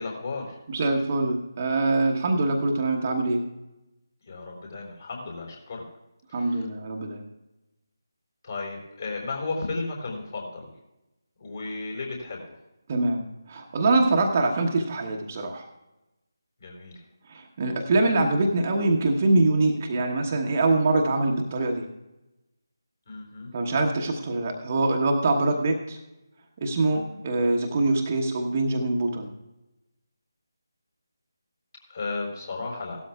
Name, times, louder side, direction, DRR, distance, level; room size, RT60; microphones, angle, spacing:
voice 1, 0.0-0.6 4.2-5.8 6.3-6.7 8.4-10.7 11.4-12.6 14.1-14.2 16.6-17.0 23.1-23.5 26.9-27.2 31.9-33.0, left 3 dB, 45° left, 0 dB, 3.9 m, -34 dB
voice 2, 0.7-3.4 6.3-7.2 12.9-13.2 13.5-15.6 17.3-21.8 23.5-26.0 26.6-29.3, right 2 dB, 30° right, 2 dB, 1.1 m, -24 dB
17.0 x 12.5 x 2.3 m, 0.97 s
figure-of-eight pair, 155°, 2 cm